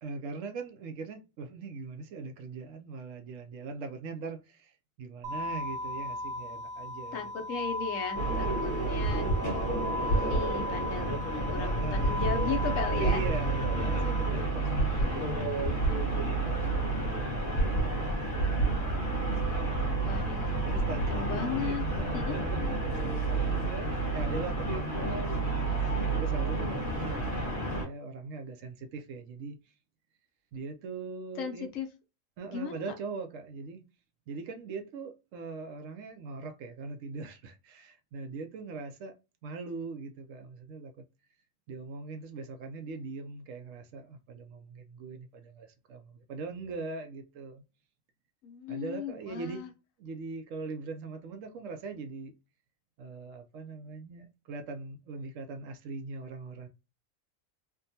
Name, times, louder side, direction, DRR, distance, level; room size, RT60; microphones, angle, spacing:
voice 1, 0.0-7.3 11.5-12.4 12.9-18.7 20.1-25.5 26.1-29.6 30.5-31.7 32.4-33.8 34.3-39.1 39.4-41.0 41.7-47.6 48.7-49.6 50.0-52.3 53.0-56.7, right 4 dB, 75° right, 0.9 m, -41 dB
sound 1, 5.2-14.3, left 1 dB, 50° right, 0.6 m, -37 dB
voice 2, 7.1-9.3 10.1-11.1 11.5-13.2 20.0-20.7 21.1-21.8 22.1-22.4 31.4-31.9 32.5-32.8 48.4-49.7, left 6 dB, 75° left, 1.1 m, -36 dB
sound 2, 8.1-27.8, right 2 dB, 15° left, 1.0 m, -30 dB
sound 3, 8.2-22.2, right 1 dB, 45° left, 1.2 m, -34 dB
3.5 x 2.2 x 2.7 m
omnidirectional pair, 1.4 m